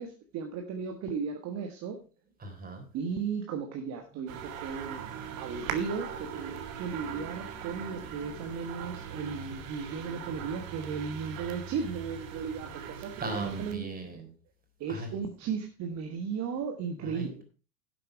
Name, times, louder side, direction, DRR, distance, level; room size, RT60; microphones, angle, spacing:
voice 1, 0.0-2.0 2.9-13.8 14.8-17.4, right 6 dB, 35° right, 4 dB, 1.5 m, -35 dB
voice 2, 2.4-2.8 13.2-14.3 14.9-15.1 17.0-17.4, right 2 dB, 20° right, 4 dB, 3.6 m, -37 dB
sound 1, 4.3-13.7, right 7 dB, 55° right, 2.2 m, -40 dB
11.5 x 7.6 x 4.6 m, 0.34 s
hypercardioid pair, 100°, 48 cm